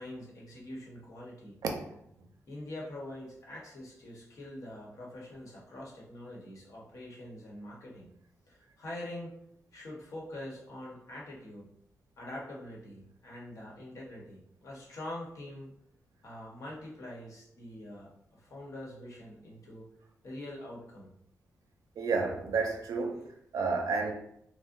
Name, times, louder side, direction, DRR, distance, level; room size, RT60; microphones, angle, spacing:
voice 1, 0.0-1.6 2.5-8.1 8.5-9.3 9.7-11.7 12.2-15.7 16.2-19.9 20.2-21.1, left 1 dB, 65° left, 1.0 m, -44 dB
voice 2, 22.0-23.2 23.5-24.1, right 4 dB, 80° right, 0.5 m, -30 dB
2.5 x 2.1 x 3.7 m
cardioid pair, 100°, 6 cm